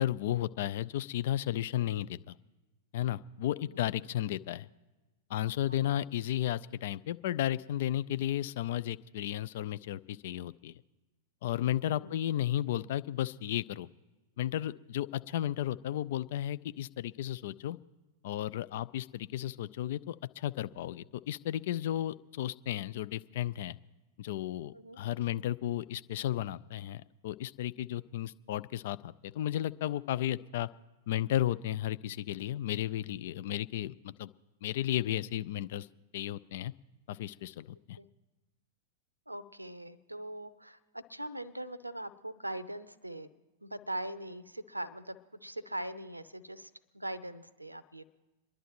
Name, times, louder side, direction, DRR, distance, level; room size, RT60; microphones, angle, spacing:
voice 1, 0.0-2.3 2.9-4.7 5.3-10.8 11.4-13.9 14.4-17.8 18.2-23.8 24.2-30.7 31.1-34.3 34.6-35.9 36.1-36.7 37.1-38.0, left 12 dB, 55° left, 16 dB, 0.3 m, -34 dB
voice 2, 3.5-3.9 5.7-6.0 11.8-12.2 24.7-25.0 38.0-38.1 39.3-43.3 43.6-48.0, right 1 dB, 90° right, 17 dB, 0.6 m, -42 dB
28.0 x 11.0 x 3.0 m, 1.1 s
figure-of-eight pair, 95°, 0 cm